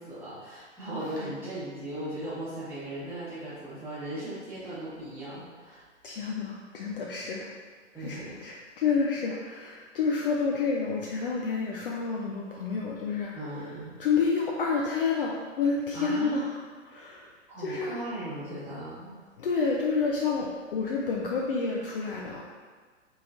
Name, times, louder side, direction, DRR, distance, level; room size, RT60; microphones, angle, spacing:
voice 1, 0.0-5.8 7.9-8.4 13.3-13.9 15.9-16.4 17.5-19.1, right 1 dB, 5° right, -13 dB, 1.2 m, -37 dB
voice 2, 6.0-7.5 8.0-13.3 14.0-16.5 16.8-17.3 17.6-18.0 19.4-22.4, left 5 dB, 45° left, -2 dB, 0.4 m, -29 dB
3.7 x 3.1 x 2.4 m, 1.5 s
hypercardioid pair, 130°, 38 cm